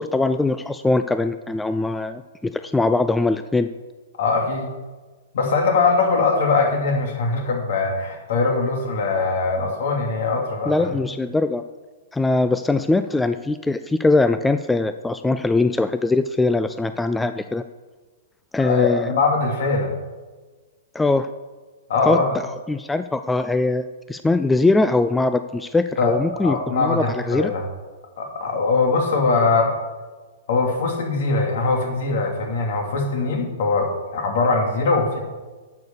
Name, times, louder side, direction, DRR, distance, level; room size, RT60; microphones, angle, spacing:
voice 1, 0.0-3.7 10.7-11.6 12.1-17.6 18.5-19.1 20.9-21.3 22.0-22.2 22.7-27.5, left 2 dB, 5° left, 10 dB, 0.3 m, -21 dB
voice 2, 4.2-4.7 5.3-11.0 18.6-19.9 21.9-22.3 26.0-27.6 28.2-29.7 30.5-35.2, left 3 dB, 65° left, 2 dB, 2.7 m, -21 dB
10.5 x 6.6 x 7.1 m, 1.3 s
hypercardioid pair, 140°, 0 cm